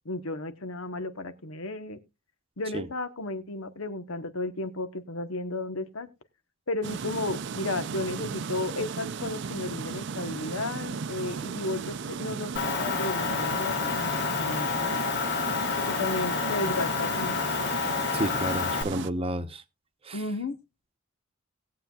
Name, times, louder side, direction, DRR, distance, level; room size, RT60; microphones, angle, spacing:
voice 1, 0.0-2.0 2.6-6.1 6.7-12.5 12.8-15.0 15.8-17.4 20.1-20.6, left 2 dB, 90° left, 1.1 m, -33 dB
sound 1, 6.8-19.1, right 5 dB, 60° right, 0.5 m, -35 dB
Motor vehicle (road) / Engine, 12.6-18.8, left 6 dB, 55° left, 1.0 m, -29 dB
voice 2, 18.1-19.6 20.0-20.2, right 1 dB, 30° right, 0.8 m, -31 dB
20.0 x 7.6 x 2.3 m
head